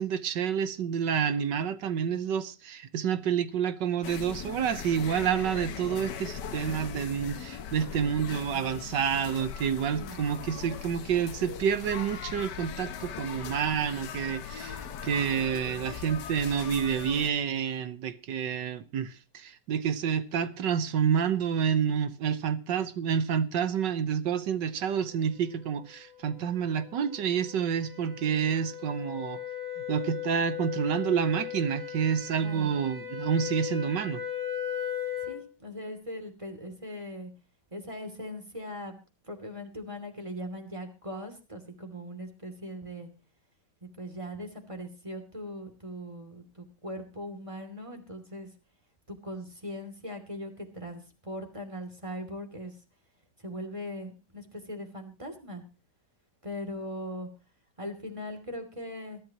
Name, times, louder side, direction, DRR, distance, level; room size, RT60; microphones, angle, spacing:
voice 1, 0.0-29.4 29.9-34.2, right 8 dB, 80° right, 1.6 m, -29 dB
sound 1, 4.0-17.3, left 8 dB, 75° left, 1.6 m, -40 dB
voice 2, 9.9-10.3 32.4-32.7 35.2-37.3 37.7-39.0 39.3-43.1 43.8-48.5 49.1-52.7 53.4-55.6 56.4-57.3 57.8-59.2, equal, 15° right, 2.8 m, -40 dB
sound 2, 25.5-35.5, left 10 dB, 55° right, 7.0 m, -38 dB
22.0 x 12.0 x 3.0 m
omnidirectional pair, 1.9 m